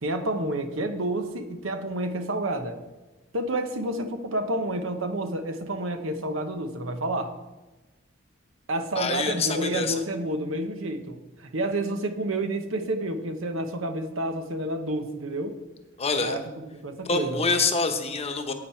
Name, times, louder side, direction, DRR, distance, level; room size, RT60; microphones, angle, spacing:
voice 1, 0.0-2.8 3.3-7.3 8.7-15.6 16.2-16.4 16.8-17.4, right 1 dB, 80° right, 7 dB, 1.0 m, -29 dB
voice 2, 8.9-10.0 16.0-16.4 17.0-18.5, left 4 dB, 30° left, 6 dB, 0.9 m, -26 dB
10.0 x 8.7 x 4.4 m, 1.1 s
head